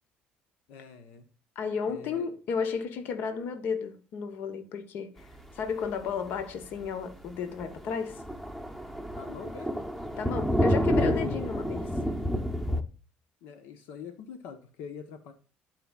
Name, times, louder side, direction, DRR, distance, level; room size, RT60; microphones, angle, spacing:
voice 1, 0.7-1.2 1.9-2.3 9.1-9.9 13.4-15.3, left 6 dB, 80° left, 1.0 m, -44 dB
voice 2, 1.5-5.2 5.5-8.2 10.1-11.9, left 6 dB, 65° left, 1.1 m, -33 dB
Thunder, 5.8-6.0 6.4-6.5 6.9-7.0 7.3-7.4 7.6-12.8, equal, 5° left, 0.8 m, -29 dB
11.5 x 5.0 x 2.4 m
cardioid pair, 115°, 4 cm